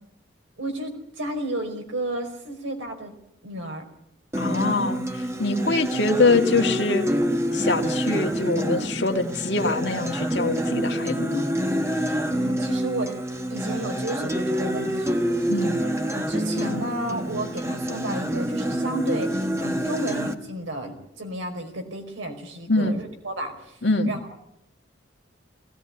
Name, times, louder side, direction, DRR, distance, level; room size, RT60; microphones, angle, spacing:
voice 1, 0.6-3.1 3.4-3.8 12.2-13.1 13.5-15.5 15.8-23.8 24.1-24.4, right 1 dB, 80° right, 4 dB, 4.9 m, -32 dB
Acoustic guitar, 4.3-20.3, equal, 15° right, 1.4 m, -27 dB
voice 2, 4.4-7.1 7.5-11.4 15.5-15.8 22.7-22.9 23.8-24.1, left 3 dB, 65° left, 5 dB, 1.9 m, -24 dB
20.5 x 18.0 x 9.7 m, 0.79 s
head